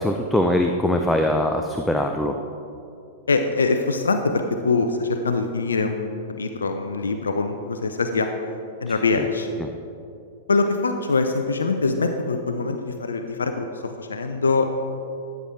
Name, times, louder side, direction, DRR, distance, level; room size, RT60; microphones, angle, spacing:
voice 1, 0.0-2.4 8.9-9.3 9.6-9.7, left 1 dB, 5° left, 4 dB, 0.5 m, -22 dB
voice 2, 3.3-8.3 8.8-9.5 10.5-13.7 14.0-14.6, left 3 dB, 75° left, 6 dB, 0.6 m, -23 dB
13.5 x 7.9 x 3.8 m, 2.5 s
figure-of-eight pair, 100°, 0 cm